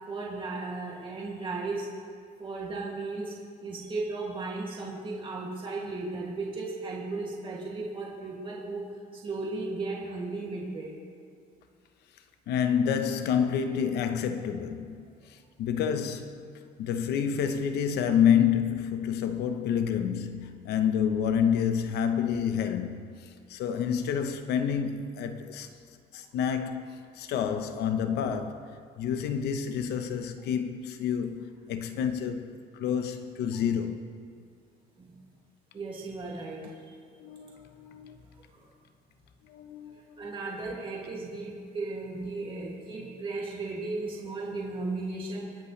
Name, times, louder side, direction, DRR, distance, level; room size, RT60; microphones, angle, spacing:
voice 1, 0.1-1.9 2.4-3.3 3.6-11.0 35.0-35.2 35.7-37.0 38.5-38.6 40.2-45.5, right 3 dB, 30° right, 2.4 m, -35 dB
voice 2, 12.5-15.1 15.6-16.5 16.8-23.0 23.5-25.7 26.1-28.7 29.0-34.0 37.2-38.2 39.5-40.3, left 8 dB, 80° left, 1.0 m, -28 dB
24.0 x 8.3 x 3.3 m
cardioid pair, 110°, 17 cm